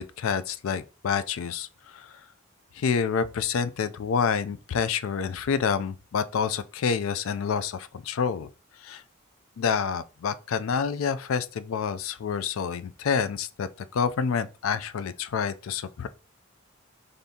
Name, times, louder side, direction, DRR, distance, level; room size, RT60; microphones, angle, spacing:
voice 1, 0.0-1.7 1.9-2.1 2.8-8.5 8.8-9.0 9.6-13.7 13.9-16.1, left 6 dB, 80° left, 0.4 m, -28 dB
6.8 x 2.7 x 2.7 m
head